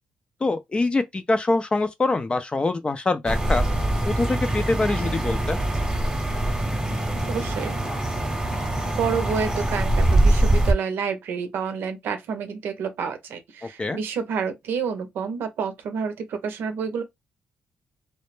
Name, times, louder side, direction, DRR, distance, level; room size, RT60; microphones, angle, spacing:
voice 1, 0.4-3.6 4.0-5.6 13.8-14.0, left 3 dB, 30° left, 0.4 m, -24 dB
sound 1, 3.3-10.7, right 1 dB, 20° right, 0.9 m, -23 dB
voice 2, 7.3-7.8 9.0-17.0, right 6 dB, 75° right, 0.6 m, -29 dB
2.2 x 2.0 x 3.1 m
supercardioid pair, 60°, 4 cm